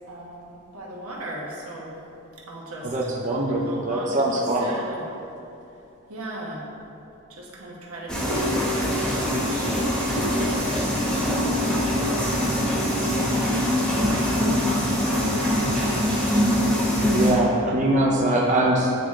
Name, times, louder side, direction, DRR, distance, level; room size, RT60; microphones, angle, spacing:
voice 1, 0.1-2.0 2.5-5.1 6.1-6.8 7.3-12.9 13.8-16.1, right 1 dB, 85° right, -3 dB, 1.1 m, -37 dB
voice 2, 2.8-4.7 17.1-19.0, right 1 dB, 35° right, -3 dB, 0.5 m, -22 dB
sound 1, 8.1-17.3, equal, 5° left, 1.0 m, -23 dB
9.0 x 3.7 x 3.1 m, 2.8 s
head